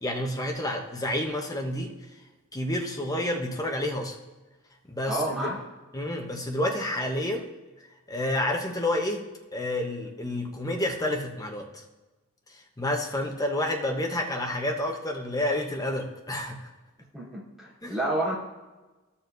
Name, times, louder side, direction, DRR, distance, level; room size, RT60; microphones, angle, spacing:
voice 1, 0.0-1.9 2.5-4.2 4.9-5.5 5.9-7.5 8.1-9.3 9.5-11.8 12.5-16.7 17.8-17.9, left 1 dB, 15° left, 2 dB, 0.9 m, -29 dB
voice 2, 5.1-5.6 17.1-18.3, right 1 dB, ahead, -9 dB, 2.9 m, -29 dB
12.5 x 7.0 x 2.6 m, 1.2 s
head